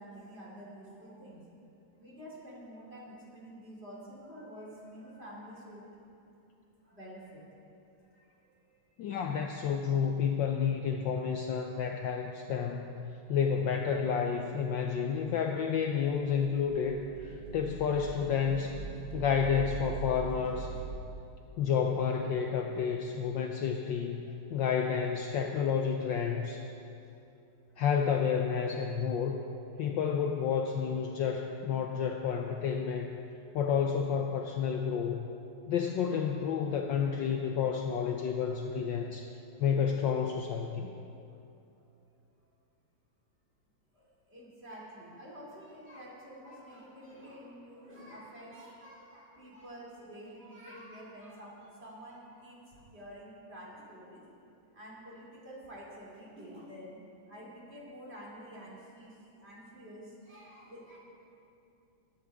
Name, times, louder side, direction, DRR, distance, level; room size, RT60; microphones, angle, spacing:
voice 1, 0.0-1.4 2.0-5.8 6.8-7.4 8.1-8.3 24.2-24.4 25.7-25.8 27.7-27.8 39.2-39.4 41.8-41.9 43.9-54.2 54.7-57.0 57.3-61.0, equal, 30° right, -6 dB, 3.1 m, -49 dB
voice 2, 9.0-13.0 13.3-18.8 19.1-20.7 21.6-26.7 27.8-29.4 29.8-33.1 33.5-35.3 35.7-39.3 39.6-40.9, left 7 dB, 70° left, 3 dB, 1.2 m, -30 dB
sound 1, 16.1-20.9, right 5 dB, 45° right, 2.8 m, -42 dB
20.5 x 10.5 x 3.6 m, 2.7 s
omnidirectional pair, 2.4 m